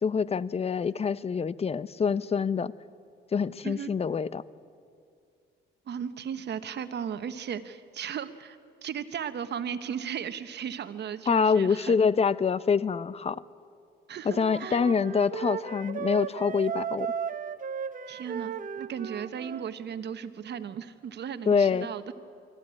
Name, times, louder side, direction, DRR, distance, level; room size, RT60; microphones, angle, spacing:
voice 1, 0.0-2.7 3.3-4.4 11.3-13.4 14.2-17.1 21.5-21.9, left 5 dB, 30° left, 18 dB, 0.6 m, -26 dB
voice 2, 5.9-12.0 14.1-14.8 18.1-22.1, right 8 dB, 60° right, 11 dB, 1.2 m, -36 dB
Wind instrument woodwind instrument, 14.3-19.7, right 7 dB, 40° right, 0.9 m, -35 dB
24.0 x 14.5 x 9.7 m, 2.3 s
cardioid pair, 90°, 20 cm